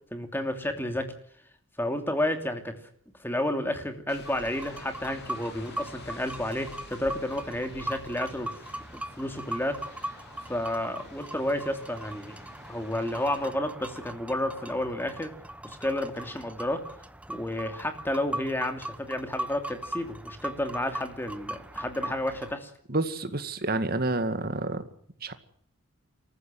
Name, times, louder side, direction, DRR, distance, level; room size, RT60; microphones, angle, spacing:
voice 1, 0.1-1.1 1.8-2.7 3.2-8.5 8.9-10.1 10.4-12.4 12.7-15.3 15.6-16.8 17.3-22.7, left 1 dB, 10° left, 6 dB, 2.8 m, -31 dB
sound 1, 4.1-13.5, left 3 dB, 50° left, 3.5 m, -50 dB
sound 2, 4.2-22.5, right 1 dB, 5° right, 1.0 m, -40 dB
voice 2, 22.9-24.8 25.2-25.3, right 2 dB, 45° right, 10 dB, 2.1 m, -29 dB
27.0 x 15.0 x 7.8 m, 0.64 s
head